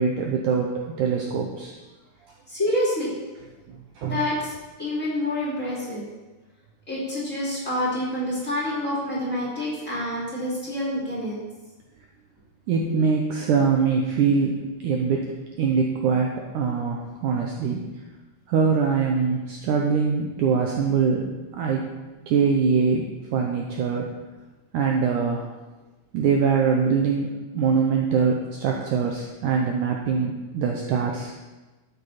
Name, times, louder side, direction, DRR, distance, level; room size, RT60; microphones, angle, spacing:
voice 1, 0.0-1.8 4.0-4.2 12.7-15.3 15.6-17.8 18.5-21.9 22.3-23.1 23.3-24.1 24.7-25.5 26.1-31.3, right 5 dB, 85° right, 1 dB, 1.8 m, -23 dB
voice 2, 2.5-3.1 4.0-4.5 4.8-6.0 6.9-11.4, left 1 dB, 20° left, -5 dB, 2.5 m, -27 dB
12.5 x 8.6 x 4.1 m, 1.2 s
omnidirectional pair, 4.7 m